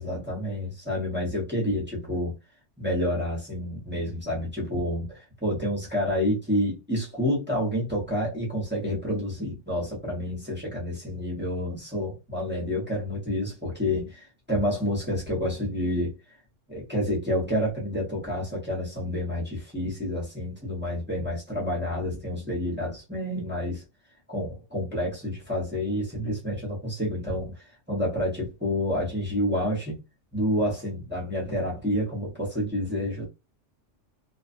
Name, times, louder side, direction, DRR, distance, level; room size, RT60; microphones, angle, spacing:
voice 1, 0.0-2.3 2.8-16.1 16.7-23.8 24.3-30.0 30.3-33.2, left 1 dB, 10° right, 0.9 m, -29 dB
2.4 x 2.3 x 2.5 m
omnidirectional pair, 1.2 m